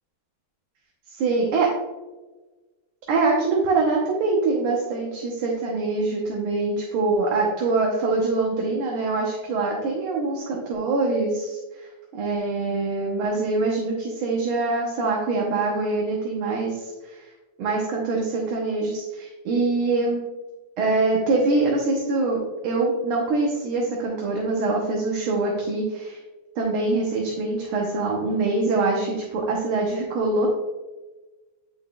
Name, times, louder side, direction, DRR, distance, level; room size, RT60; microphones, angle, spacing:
voice 1, 1.2-1.7 3.1-17.2 17.6-20.3 20.8-26.2 26.6-30.5, right 3 dB, 75° right, -2 dB, 1.8 m, -24 dB
8.7 x 5.4 x 2.3 m, 1.2 s
omnidirectional pair, 2.4 m